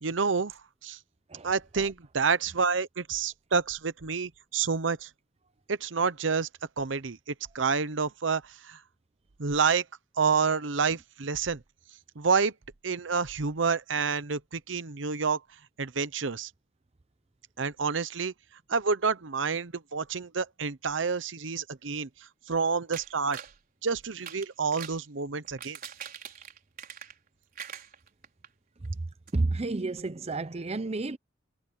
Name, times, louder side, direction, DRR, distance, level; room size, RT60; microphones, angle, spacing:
voice 1, 0.0-1.0 1.4-5.1 5.7-6.5 6.8-7.2 7.5-8.8 9.4-9.8 10.2-11.6 12.2-12.5 12.8-15.4 15.8-16.5 17.6-18.3 18.7-22.1 22.5-23.4 23.8-25.8, right 5 dB, 75° right, 0.9 m, -28 dB
voice 2, 1.3-1.9 28.8-29.0 29.3-31.2, right 2 dB, 35° right, 0.6 m, -31 dB
sound 1, 22.9-23.6 24.1-25.0 25.4-27.3 27.5-28.5 28.8-28.9 29.3-29.4, right 8 dB, 50° right, 5.2 m, -43 dB
head